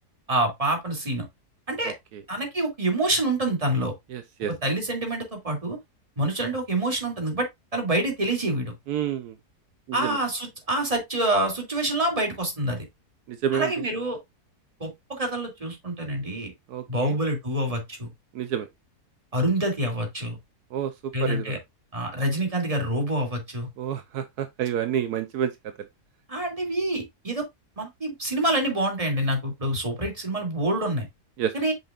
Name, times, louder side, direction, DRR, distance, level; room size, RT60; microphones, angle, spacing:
voice 1, 0.3-1.2 1.7-1.9 2.3-3.9 4.6-5.8 6.2-7.5 7.7-8.7 9.9-12.8 13.5-14.2 14.8-16.5 16.9-18.1 19.3-20.4 21.1-21.6 21.9-23.7 26.3-27.5 27.8-31.1 31.5-31.7, right 1 dB, 20° right, 2.5 m, -26 dB
voice 2, 4.1-4.5 8.9-9.4 9.9-10.2 13.3-13.7 16.7-17.1 18.3-18.7 20.7-21.5 23.8-25.7 31.4-31.5, right 9 dB, 75° right, 1.2 m, -29 dB
7.5 x 5.5 x 2.4 m
omnidirectional pair, 1.7 m